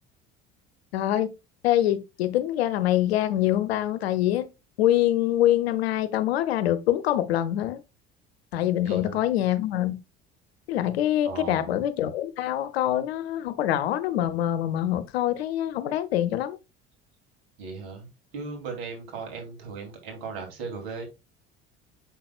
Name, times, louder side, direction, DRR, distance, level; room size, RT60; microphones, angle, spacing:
voice 1, 0.9-1.3 1.6-4.5 4.8-7.8 8.5-10.0 10.7-16.6, left 12 dB, 85° left, 0.8 m, -25 dB
voice 2, 8.8-9.3 11.2-11.8 17.6-18.1 18.3-21.1, right 4 dB, 75° right, 2.9 m, -37 dB
7.1 x 5.9 x 2.4 m
hypercardioid pair, 70°, 30 cm